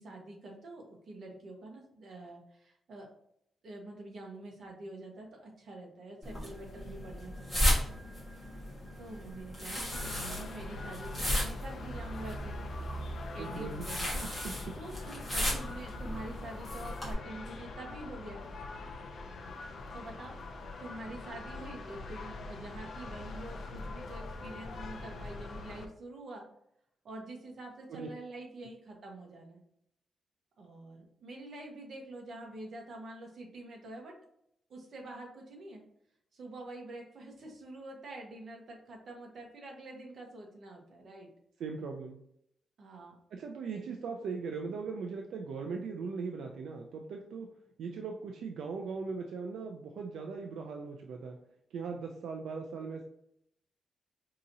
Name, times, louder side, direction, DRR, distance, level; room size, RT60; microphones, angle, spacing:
voice 1, 0.0-3.1 3.6-7.8 9.0-12.5 13.3-14.1 14.8-18.4 19.9-26.4 27.0-29.6 30.6-34.1 34.7-35.8 36.3-41.3 42.8-43.1, right 2 dB, 50° right, 0 dB, 0.9 m, -46 dB
sound 1, 6.2-17.1, equal, ahead, 1.4 m, -35 dB
sound 2, 9.9-25.9, left 2 dB, 45° left, 0.4 m, -43 dB
voice 2, 13.4-13.8 14.1-14.5 27.9-28.1 41.6-42.2 43.3-47.5 47.8-51.4 51.7-53.0, right 5 dB, 75° right, 2 dB, 0.4 m, -39 dB
4.8 x 2.8 x 2.6 m, 0.74 s
wide cardioid pair, 180°, 0 cm